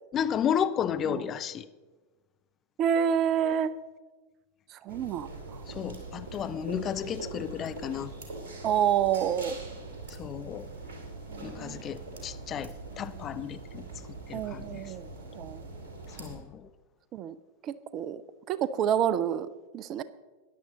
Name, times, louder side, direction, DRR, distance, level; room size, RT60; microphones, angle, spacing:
voice 1, 0.1-1.6 5.7-8.1 10.1-10.7 11.4-14.9 16.1-16.7, left 8 dB, 30° left, 12 dB, 0.5 m, -33 dB
voice 2, 2.8-3.7 4.7-5.3 8.6-9.6 11.3-11.8 14.3-15.1 15.3-15.6 17.1-17.3 17.6-18.2 18.5-19.5 19.7-20.0, right 9 dB, 35° right, 16 dB, 0.5 m, -28 dB
sound 1, 4.9-16.4, right 3 dB, 55° right, 2.6 m, -43 dB
14.0 x 10.5 x 3.9 m, 1.3 s
figure-of-eight pair, 90°, 0 cm